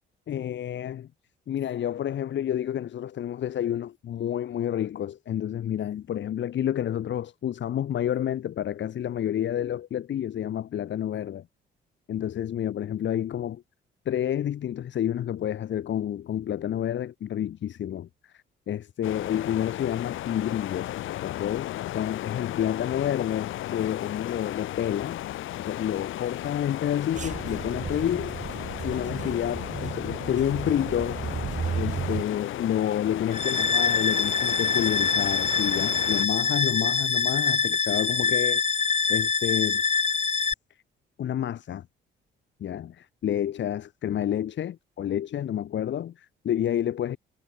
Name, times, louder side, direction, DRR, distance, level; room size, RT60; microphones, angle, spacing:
voice 1, 0.3-1.1 1.5-11.5 12.1-13.6 14.1-18.1 18.7-20.9 21.2-25.2 25.6-28.4 28.8-31.2 31.7-38.6 39.1-39.8 41.2-41.8 42.6-47.2, left 10 dB, 65° left, 3.7 m, -29 dB
sound 1, 19.0-36.3, left 14 dB, 85° left, 5.7 m, -35 dB
sound 2, 27.1-32.2, right 6 dB, 40° right, 1.7 m, -34 dB
sound 3, 33.3-40.5, left 5 dB, 35° left, 1.9 m, -25 dB
cardioid pair, 90°, 20 cm